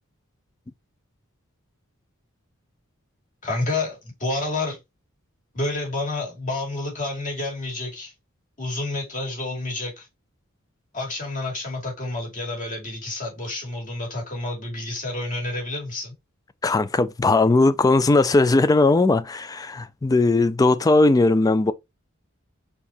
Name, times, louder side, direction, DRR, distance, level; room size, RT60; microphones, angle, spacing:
voice 1, 3.4-4.8 5.5-8.1 8.6-10.1 10.9-16.1, left 2 dB, 40° left, 2.4 m, -29 dB
voice 2, 16.6-21.7, left 2 dB, 15° left, 0.3 m, -18 dB
4.5 x 2.7 x 4.1 m
head